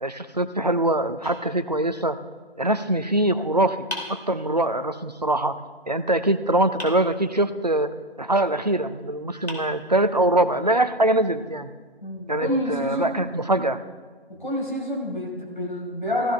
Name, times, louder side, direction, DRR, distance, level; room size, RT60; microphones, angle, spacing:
voice 1, 0.0-2.2 2.6-3.8 4.1-5.6 5.9-11.7 12.3-13.8, right 1 dB, 40° right, 10 dB, 0.6 m, -23 dB
sound 1, 1.2-2.2 3.9-4.9 6.8-7.7 8.9-9.0 9.5-10.4, left 1 dB, 80° left, 3.3 m, -39 dB
voice 2, 12.0-13.2 14.3-16.3, left 1 dB, 50° left, -3 dB, 4.8 m, -28 dB
15.0 x 15.0 x 3.4 m, 1.4 s
figure-of-eight pair, 170°, 31 cm